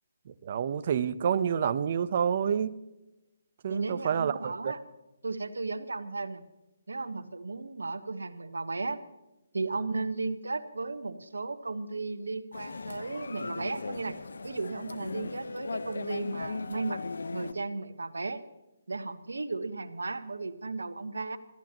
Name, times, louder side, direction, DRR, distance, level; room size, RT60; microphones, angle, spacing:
voice 1, 0.3-2.7 3.6-4.7, right 8 dB, 45° right, 14 dB, 0.8 m, -28 dB
voice 2, 3.7-4.8 5.2-6.4 6.9-9.0 9.5-17.0 17.3-18.4 18.9-21.4, right 3 dB, 80° right, 9 dB, 1.3 m, -35 dB
sound 1, 12.5-17.5, left 3 dB, 70° left, 1.1 m, -37 dB
26.5 x 14.5 x 3.0 m, 0.99 s
figure-of-eight pair, 145°, 0 cm